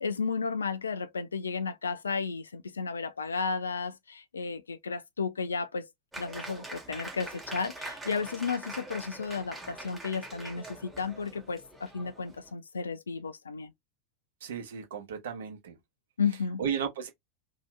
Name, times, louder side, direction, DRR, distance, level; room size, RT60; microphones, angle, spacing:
voice 1, 0.0-5.9 6.2-13.7 16.2-16.6, left 5 dB, 75° left, 0.4 m, -33 dB
Applause, 6.1-12.5, right 2 dB, 10° right, 1.0 m, -43 dB
voice 2, 14.4-15.7 16.6-17.1, right 7 dB, 60° right, 0.9 m, -34 dB
2.7 x 2.2 x 3.1 m
figure-of-eight pair, 85°, 0 cm